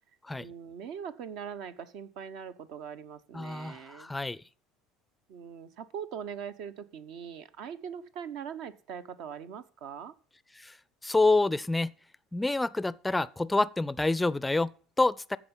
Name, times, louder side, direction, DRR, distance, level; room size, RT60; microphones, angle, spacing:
voice 1, 0.4-4.1 5.3-10.1, right 7 dB, 65° right, 0.8 m, -41 dB
voice 2, 3.3-4.4 10.6-10.8 11.0-11.9 12.3-15.4, left 2 dB, 10° left, 0.4 m, -27 dB
14.5 x 4.9 x 5.4 m
hypercardioid pair, 70°, 0 cm